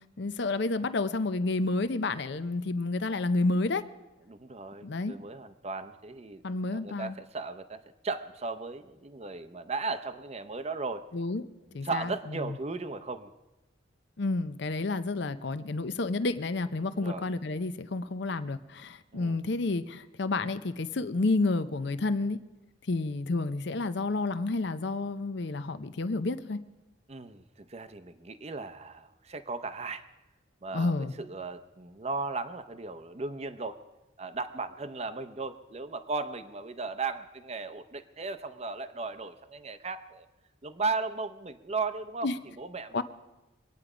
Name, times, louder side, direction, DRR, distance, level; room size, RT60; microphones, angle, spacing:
voice 1, 0.2-3.8 4.8-5.2 6.4-7.1 11.1-11.4 11.7-12.1 12.4-12.5 14.2-22.4 22.9-26.6 30.7-31.1 42.2-42.4 42.9-43.0, left 3 dB, 60° left, 12 dB, 0.6 m, -30 dB
voice 2, 4.3-6.4 6.7-11.1 11.8-13.3 16.9-17.3 19.1-19.4 27.1-27.4 27.7-30.1 30.6-33.8 34.2-40.3 40.6-43.0, right 3 dB, 35° right, 11 dB, 0.7 m, -36 dB
24.0 x 9.3 x 4.9 m, 1.0 s
head